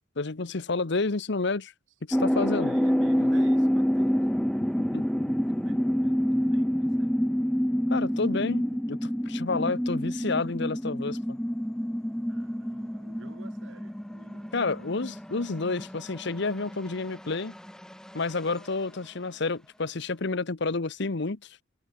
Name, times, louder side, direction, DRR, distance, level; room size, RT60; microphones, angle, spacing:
voice 1, 0.2-1.7 2.1-2.7 4.9-5.0 7.9-11.4 14.5-17.5 18.1-21.6, left 3 dB, 65° left, 1.0 m, -30 dB
sound 1, 2.1-18.2, equal, 5° left, 0.6 m, -27 dB
voice 2, 2.6-4.3 4.9-7.2 12.3-14.5, right 2 dB, 85° right, 2.1 m, -49 dB
head